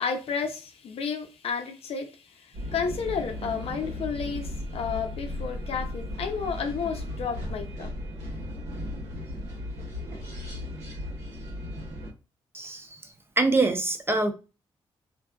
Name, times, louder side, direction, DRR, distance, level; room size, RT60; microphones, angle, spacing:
voice 1, 0.0-7.9, left 6 dB, 65° left, 0.5 m, -32 dB
sound 1, 2.5-12.1, left 1 dB, 70° right, 1.3 m, -36 dB
voice 2, 12.5-12.9 13.4-14.3, right 3 dB, 20° right, 0.5 m, -24 dB
2.6 x 2.2 x 2.3 m
supercardioid pair, 60°, 11 cm